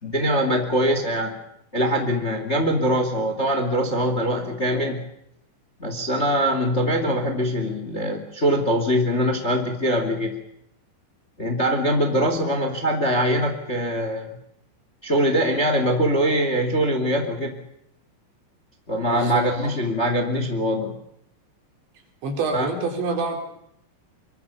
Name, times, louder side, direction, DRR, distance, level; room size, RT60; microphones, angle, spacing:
voice 1, 0.0-1.4 1.7-5.0 5.8-10.4 11.4-14.3 15.0-17.6 18.9-21.0 22.5-22.7, equal, 20° left, 5 dB, 1.9 m, -23 dB
voice 2, 19.0-19.5 22.2-23.4, right 4 dB, 80° right, 3 dB, 6.5 m, -26 dB
25.0 x 24.0 x 7.0 m, 0.76 s
omnidirectional pair, 5.1 m